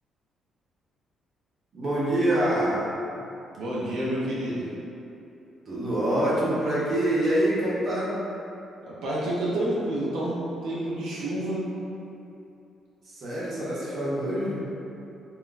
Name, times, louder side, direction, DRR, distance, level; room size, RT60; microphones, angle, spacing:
voice 1, 1.7-2.8 5.6-8.1 13.1-14.6, right 1 dB, 55° right, -8 dB, 0.8 m, -25 dB
voice 2, 3.6-4.7 8.9-10.4 10.6-11.6, right 1 dB, 85° right, -8 dB, 0.5 m, -29 dB
2.3 x 2.1 x 3.8 m, 2.8 s
cardioid pair, 90°, 0 cm